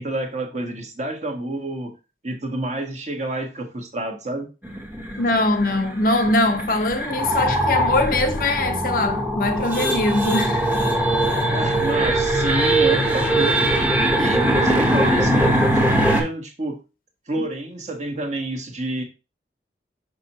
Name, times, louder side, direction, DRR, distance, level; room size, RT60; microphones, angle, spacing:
voice 1, 0.0-1.9 2.2-4.5 11.5-13.8 14.2-16.8 17.3-19.0, right 1 dB, 40° right, 1.2 m, -28 dB
sound 1, 4.6-16.2, right 1 dB, 10° right, 0.9 m, -21 dB
voice 2, 5.2-10.7 17.4-17.5, left 2 dB, 50° left, 0.7 m, -22 dB
6.1 x 5.4 x 2.9 m
head